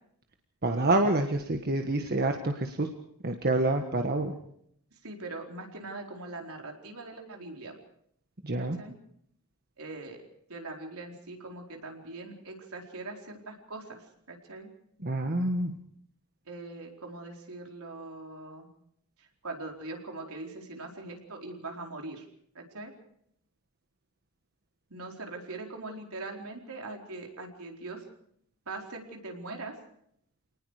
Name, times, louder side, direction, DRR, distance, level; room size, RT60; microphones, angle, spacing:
voice 1, 0.6-2.9 3.2-4.3 8.4-8.8 15.0-15.7, right 2 dB, 45° right, 4 dB, 1.5 m, -27 dB
voice 2, 5.0-7.7 8.6-9.0 9.8-10.2 10.5-14.7 16.5-18.7 19.2-22.3 22.5-22.9 24.9-28.0 28.7-29.8, right 2 dB, 70° right, 2 dB, 4.4 m, -41 dB
27.0 x 19.5 x 4.9 m, 0.69 s
head